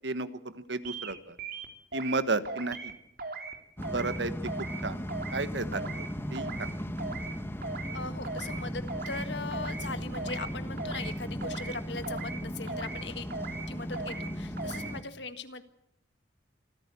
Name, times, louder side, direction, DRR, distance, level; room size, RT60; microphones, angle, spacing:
voice 1, 0.0-1.4 1.9-2.9 3.9-5.1 5.3-6.8, right 3 dB, 75° right, 13 dB, 1.4 m, -33 dB
sound 1, 0.9-1.1 1.4-2.2 2.5-2.9 3.2-3.6 3.8-4.2 4.5-4.8 5.1-5.4 5.7-6.1 6.4-6.7 7.0-7.3 7.6-8.0 8.2-8.6 8.9-9.2 9.5-9.9 10.1-10.5 10.8-11.1 11.4-11.8 12.0-12.4 12.7-13.0 13.3-13.7 13.9-14.3 14.6-14.9, right 4 dB, 55° right, 3.1 m, -38 dB
sound 2, 3.8-15.0, equal, 15° left, 1.3 m, -37 dB
voice 2, 7.9-13.3 13.7-15.6, left 3 dB, 75° left, 10 dB, 1.7 m, -39 dB
26.5 x 15.0 x 8.3 m, 0.76 s
head